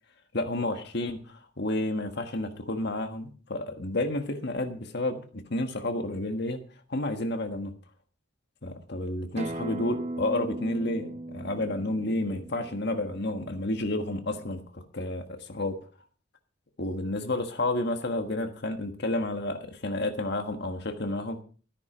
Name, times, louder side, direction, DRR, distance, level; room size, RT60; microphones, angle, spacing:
voice 1, 0.3-6.6 6.9-7.7 8.6-15.8 16.8-21.4, left 1 dB, 55° left, 7 dB, 1.5 m, -31 dB
Acoustic guitar, 9.4-14.6, right 1 dB, 30° right, 0.7 m, -38 dB
13.5 x 10.5 x 5.0 m, 0.40 s
head